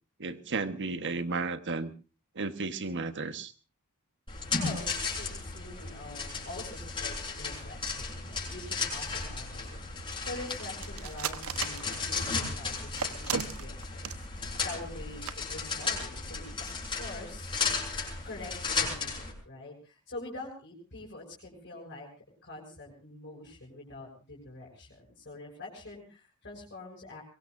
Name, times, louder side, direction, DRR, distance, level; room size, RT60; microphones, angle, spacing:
voice 1, 0.2-1.9 2.3-3.5, right 3 dB, 55° right, 10 dB, 1.4 m, -33 dB
sound 1, 4.3-19.3, left 4 dB, 25° left, 6.9 m, -35 dB
voice 2, 4.6-4.9 5.2-16.5 17.0-17.5 18.2-22.1 22.4-27.2, left 2 dB, 55° left, -3 dB, 6.4 m, -45 dB
sound 2, 10.8-12.4 13.0-14.2 14.5-14.7 15.0-15.1 15.3-15.4 15.8-15.9, right 7 dB, 70° right, 1.2 m, -35 dB
23.0 x 23.0 x 2.7 m, 0.35 s
head